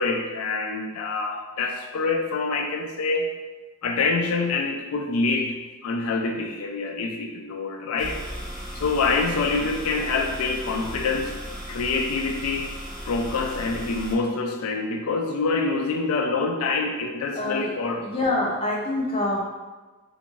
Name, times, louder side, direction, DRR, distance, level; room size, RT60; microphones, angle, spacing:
voice 1, 0.0-3.4 3.8-5.5 5.8-8.2 8.7-11.3 11.7-12.7 13.0-18.0, left 3 dB, 85° left, 3 dB, 0.4 m, -26 dB
sound 1, 8.0-14.1, equal, ahead, 0.8 m, -36 dB
voice 2, 17.3-17.8 18.0-19.4, left 2 dB, 25° left, -3 dB, 0.5 m, -25 dB
3.5 x 2.5 x 3.0 m, 1.2 s
head